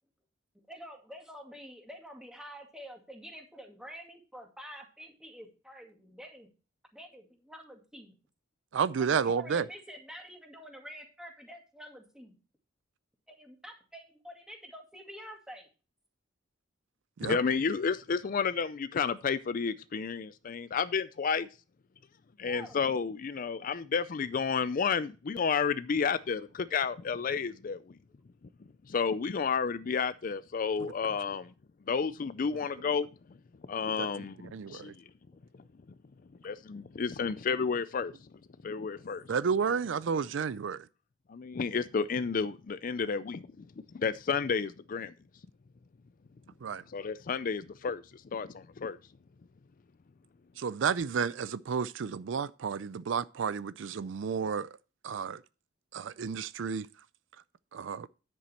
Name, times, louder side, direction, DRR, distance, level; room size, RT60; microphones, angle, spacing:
voice 1, 0.7-6.5 6.9-8.1 9.0-12.4 13.3-15.7 22.4-22.8, equal, 5° right, 2.2 m, -48 dB
voice 2, 8.7-9.7 17.2-17.4 34.0-34.1 34.5-34.9 39.3-40.8 46.6-46.8 50.6-54.7 55.0-55.4 55.9-56.9 57.7-58.1, right 6 dB, 70° right, 0.4 m, -31 dB
voice 3, 17.2-21.5 22.4-28.0 28.9-31.5 31.9-33.1 33.7-35.0 36.4-38.1 38.6-39.3 41.3-43.7 43.9-45.1 46.9-49.0, left 5 dB, 45° left, 0.4 m, -31 dB
10.0 x 7.7 x 4.3 m
head